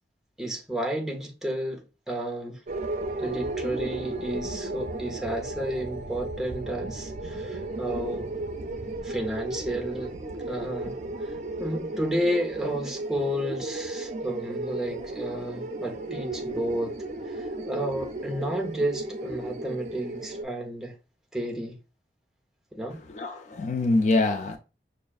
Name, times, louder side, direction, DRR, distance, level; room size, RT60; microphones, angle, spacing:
voice 1, 0.4-2.6 3.2-8.3 9.0-10.1 10.5-11.3 11.6-16.9 17.3-20.9 21.3-21.8 22.7-23.0, right 1 dB, 5° right, 0.6 m, -32 dB
sound 1, 2.7-20.4, right 2 dB, 40° right, 0.4 m, -34 dB
voice 2, 23.2-24.6, left 2 dB, 40° left, 0.3 m, -24 dB
5.6 x 2.4 x 2.3 m
head